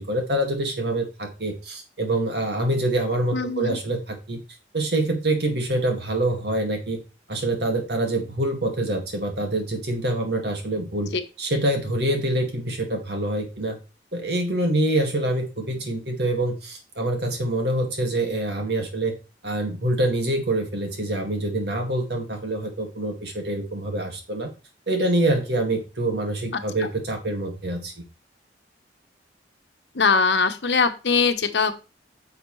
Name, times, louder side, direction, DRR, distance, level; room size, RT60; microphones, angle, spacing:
voice 1, 0.0-4.4 4.7-7.0 7.3-11.1 11.4-13.8 14.1-19.1 19.4-24.5 24.9-28.0, right 1 dB, 60° right, 3 dB, 2.1 m, -25 dB
voice 2, 3.3-3.8 11.1-11.2 26.5-26.6 29.9-31.8, left 5 dB, 70° left, 7 dB, 1.1 m, -21 dB
10.0 x 6.5 x 3.2 m, 0.30 s
head